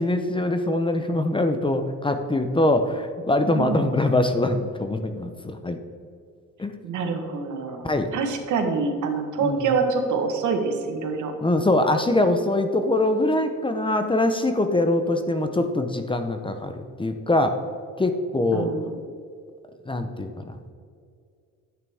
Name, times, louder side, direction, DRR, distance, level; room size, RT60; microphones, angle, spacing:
voice 1, 0.0-5.8 6.6-6.7 7.8-8.1 9.4-9.7 11.4-16.7 17.0-17.6 18.0-18.7 19.9-20.6, left 2 dB, 15° left, 7 dB, 0.8 m, -23 dB
voice 2, 3.5-4.1 6.8-11.3 18.5-19.0, right 4 dB, 75° right, 4 dB, 1.5 m, -26 dB
10.5 x 8.8 x 3.6 m, 2.3 s
cardioid pair, 90°, 30 cm